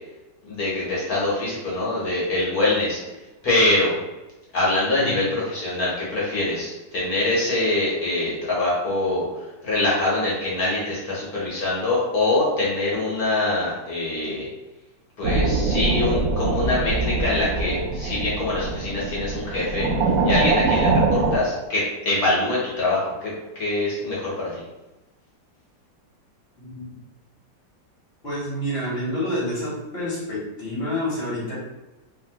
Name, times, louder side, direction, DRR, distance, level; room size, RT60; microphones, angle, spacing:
voice 1, 0.5-3.0 3.4-3.9 4.5-9.2 9.6-14.5 15.2-19.9 20.2-24.6, left 2 dB, 60° left, -6 dB, 1.2 m, -24 dB
sound 1, 15.2-21.4, right 3 dB, 75° right, 0.8 m, -23 dB
voice 2, 26.6-26.9 28.2-31.6, left 1 dB, 40° left, -7 dB, 1.1 m, -28 dB
2.9 x 2.8 x 2.8 m, 1.0 s
omnidirectional pair, 2.0 m